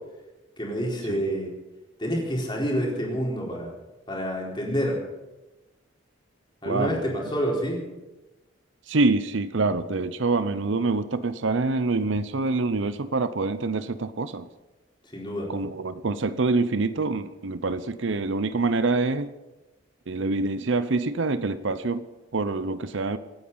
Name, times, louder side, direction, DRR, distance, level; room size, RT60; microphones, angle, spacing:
voice 1, 0.6-1.5 2.0-3.7 4.1-5.0 6.6-7.8 15.1-15.5, equal, 20° left, -2 dB, 4.2 m, -28 dB
voice 2, 6.7-7.0 8.9-14.4 15.5-19.3 20.1-22.0 22.3-23.2, right 3 dB, 65° right, 13 dB, 0.7 m, -26 dB
26.5 x 9.4 x 5.5 m, 1.1 s
head